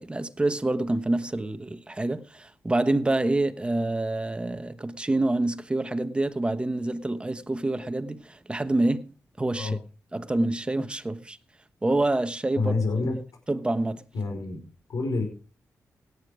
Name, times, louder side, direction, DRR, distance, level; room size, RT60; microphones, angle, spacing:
voice 1, 0.0-9.8 10.1-11.4 11.8-12.7 13.5-14.0, right 2 dB, 15° right, 1.2 m, -27 dB
voice 2, 12.6-13.2 14.1-14.6 14.9-15.2, left 3 dB, 75° left, 4.9 m, -27 dB
17.0 x 9.7 x 5.0 m
cardioid pair, 95°, 6 cm